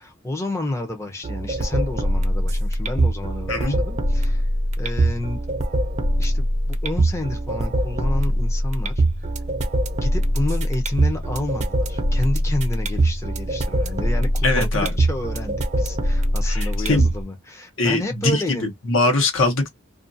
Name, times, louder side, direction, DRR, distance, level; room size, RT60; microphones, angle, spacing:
voice 1, 0.0-4.5 4.8-5.4 6.2-9.0 10.0-18.7, left 1 dB, 15° left, 0.6 m, -30 dB
sound 1, 1.2-17.2, right 1 dB, 35° right, 0.6 m, -22 dB
voice 2, 14.4-14.9 16.4-17.1 17.8-19.7, left 2 dB, 70° left, 0.9 m, -22 dB
2.4 x 2.3 x 2.6 m
head